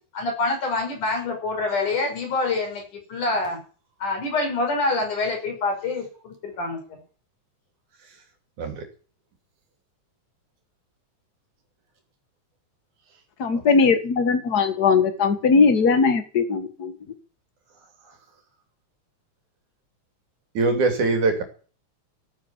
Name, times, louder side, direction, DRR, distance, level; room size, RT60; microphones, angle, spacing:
voice 1, 0.1-3.6 4.0-7.0, left 3 dB, 90° left, 2 dB, 6.9 m, -26 dB
voice 2, 13.4-16.9, left 5 dB, 40° left, 9 dB, 1.7 m, -19 dB
voice 3, 20.5-21.4, right 3 dB, 75° right, 5 dB, 4.4 m, -22 dB
15.0 x 9.4 x 7.2 m, 0.40 s
omnidirectional pair, 3.5 m